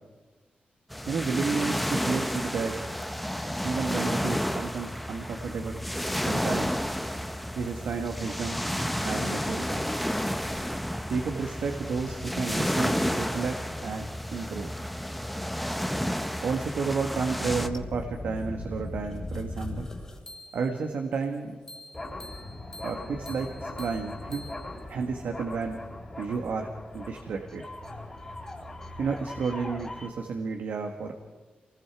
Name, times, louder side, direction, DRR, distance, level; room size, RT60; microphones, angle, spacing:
sound 1, 0.9-17.7, equal, ahead, 0.8 m, -31 dB
voice 1, 1.1-2.7 3.6-5.8 6.3-6.7 7.5-8.6 9.0-9.9 11.1-14.7 16.4-19.9 20.5-21.6 22.8-24.4 24.9-25.8 26.2-27.7 29.0-31.1, right 5 dB, 80° right, 3 dB, 1.7 m, -31 dB
sound 2, 17.4-20.8 21.7-30.1, left 2 dB, 15° left, 3.3 m, -39 dB
26.5 x 21.0 x 4.9 m, 1.3 s
wide cardioid pair, 150°, 3 cm